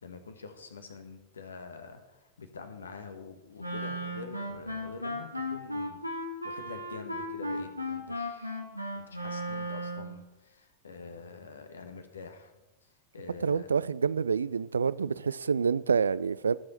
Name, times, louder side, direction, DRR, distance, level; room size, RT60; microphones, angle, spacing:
voice 1, 0.0-8.6 8.9-12.5 12.8-13.7, left 4 dB, 70° left, 1.4 m, -46 dB
Wind instrument woodwind instrument, 3.6-10.2, equal, 90° left, 1.8 m, -36 dB
voice 2, 13.4-16.6, right 6 dB, 70° right, 0.3 m, -27 dB
19.0 x 7.5 x 4.3 m
figure-of-eight pair, 90°, 0 cm